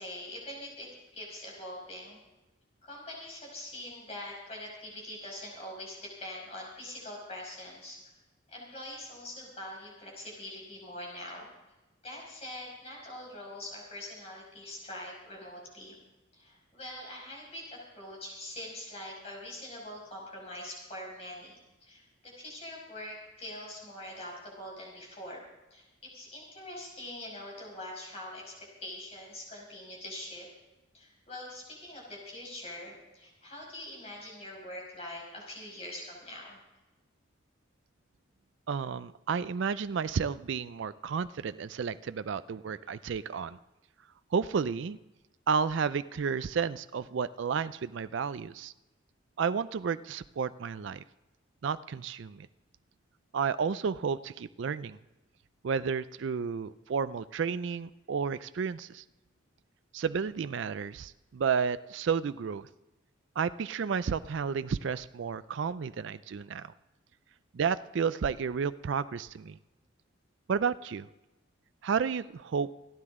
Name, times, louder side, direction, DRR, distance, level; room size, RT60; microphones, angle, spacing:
voice 1, 0.0-2.2 2.8-8.0 8.5-11.5 12.0-16.0 16.3-25.4 25.7-30.5 30.9-36.6, left 1 dB, 30° left, -2 dB, 5.5 m, -43 dB
voice 2, 38.7-43.6 44.3-45.0 45.5-48.7 49.4-51.0 51.6-52.5 53.3-55.0 55.6-59.0 59.9-62.7 63.4-66.7 67.5-69.6 70.5-71.1 71.8-72.7, right 6 dB, 65° right, 14 dB, 0.4 m, -31 dB
27.5 x 9.8 x 3.6 m, 1.0 s
head